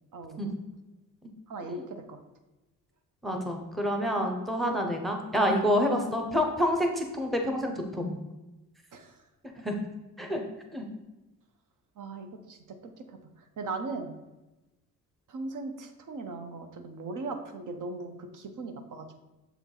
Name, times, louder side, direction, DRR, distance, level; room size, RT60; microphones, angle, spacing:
voice 1, 0.1-0.5 1.5-2.2 6.0-6.1 8.9-9.2 12.0-14.1 15.3-19.2, right 3 dB, 65° right, 7 dB, 0.8 m, -39 dB
voice 2, 3.2-8.1 9.6-9.8 10.2-10.4 10.7-10.9, equal, ahead, 2 dB, 0.6 m, -28 dB
7.0 x 4.5 x 3.8 m, 1.0 s
wide cardioid pair, 170°, 33 cm